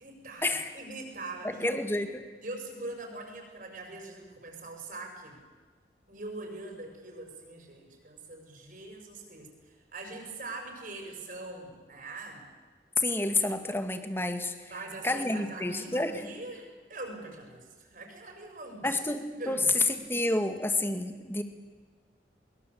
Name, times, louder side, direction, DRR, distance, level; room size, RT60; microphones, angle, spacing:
voice 1, 0.0-1.8 2.4-5.4 6.1-12.5 14.7-19.0 19.4-19.7, right 2 dB, 50° right, 3 dB, 6.8 m, -42 dB
voice 2, 1.6-2.2 13.0-14.7 15.0-16.3 18.8-21.4, left 2 dB, 15° left, 8 dB, 1.9 m, -29 dB
23.0 x 22.5 x 8.5 m, 1.4 s
head